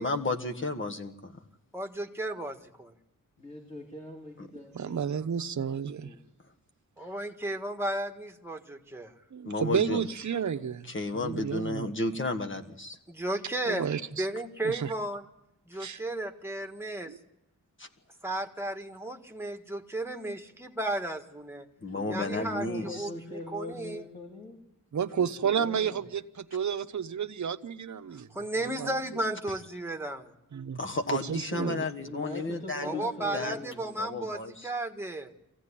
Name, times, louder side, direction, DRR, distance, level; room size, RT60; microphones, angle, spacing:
voice 1, 0.0-1.3 4.4-4.5 9.4-10.0 10.9-13.0 15.7-15.9 17.8-17.9 21.8-23.1 30.8-33.0 33.3-33.6 34.0-34.7, left 2 dB, 35° left, 4 dB, 1.5 m, -33 dB
voice 2, 1.7-2.9 7.0-9.1 13.1-13.9 14.2-15.2 15.7-17.1 18.2-21.7 22.1-24.0 28.3-30.3 32.8-35.3, right 1 dB, 5° right, 4 dB, 1.5 m, -34 dB
voice 3, 3.4-5.0 6.0-6.2 21.9-24.6 25.2-26.0 32.0-34.0, left 1 dB, 20° left, 1 dB, 2.8 m, -42 dB
voice 4, 4.7-6.1 9.3-11.9 13.7-14.3 14.6-14.9 15.8-16.0 17.1-17.2 24.9-28.3 28.6-28.9 30.5-30.8 31.1-31.8, right 7 dB, 60° right, 9 dB, 0.9 m, -31 dB
24.0 x 15.5 x 9.9 m, 0.91 s
wide cardioid pair, 140°, 33 cm